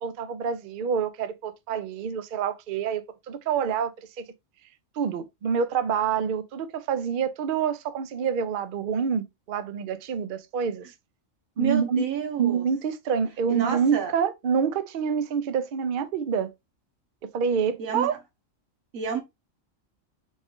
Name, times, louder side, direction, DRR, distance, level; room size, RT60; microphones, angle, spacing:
voice 1, 0.0-4.2 5.0-10.9 11.6-12.1 12.4-16.5 17.2-18.1, right 7 dB, 55° right, 0.6 m, -27 dB
voice 2, 11.6-12.7 13.5-14.1 17.8-18.1 18.9-19.2, right 7 dB, 90° right, 1.4 m, -29 dB
4.1 x 2.4 x 3.6 m
omnidirectional pair, 1.4 m